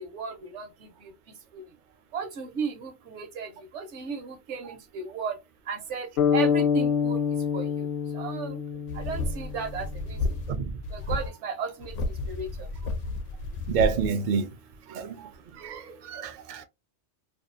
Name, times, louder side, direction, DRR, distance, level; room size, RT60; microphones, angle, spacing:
voice 1, 0.1-0.6 2.1-3.5 3.7-5.3 5.7-7.2 7.5-7.6 8.1-8.6 9.1-10.2 10.9-11.9 12.3-12.5, right 5 dB, 75° right, 1.0 m, -34 dB
sound 1, 6.2-10.1, left 7 dB, 55° left, 0.7 m, -27 dB
sound 2, 8.9-10.6 10.8-11.3 11.8-14.1, left 2 dB, 85° left, 0.9 m, -32 dB
voice 2, 13.7-14.5 14.9-15.3 15.6-16.6, right 6 dB, 55° right, 0.5 m, -28 dB
2.7 x 2.3 x 2.5 m
omnidirectional pair, 1.2 m